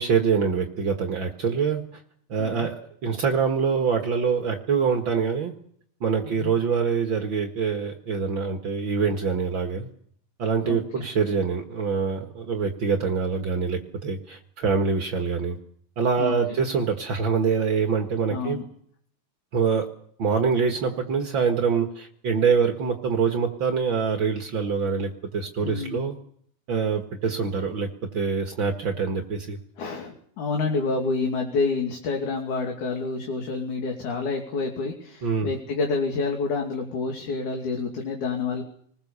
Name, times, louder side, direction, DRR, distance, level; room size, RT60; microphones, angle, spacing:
voice 1, 0.0-1.8 2.3-5.5 6.0-9.9 10.4-15.6 16.0-18.6 19.5-19.9 20.2-26.2 26.7-29.6 35.2-35.5, right 5 dB, 50° right, 3 dB, 1.6 m, -25 dB
voice 2, 10.6-11.1 16.2-16.3 18.3-18.6 25.6-26.1 29.8-38.6, left 4 dB, 55° left, 2 dB, 3.8 m, -28 dB
27.5 x 21.0 x 6.9 m, 0.63 s
omnidirectional pair, 4.5 m